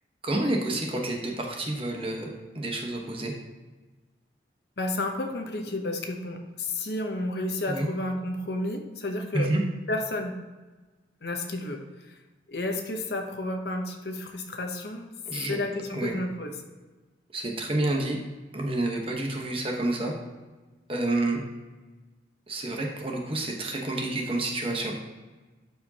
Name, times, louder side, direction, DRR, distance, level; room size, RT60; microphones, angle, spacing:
voice 1, 0.2-3.3 7.7-7.9 9.3-9.6 15.3-15.6 15.9-16.1 17.3-18.2 18.5-20.1 20.9-21.4 22.5-24.9, right 2 dB, 30° right, 1 dB, 1.1 m, -29 dB
voice 2, 4.8-9.5 9.9-10.4 11.2-11.8 12.5-15.1 15.5-16.6, left 2 dB, 60° left, 4 dB, 0.9 m, -31 dB
11.5 x 4.8 x 2.8 m, 1.2 s
head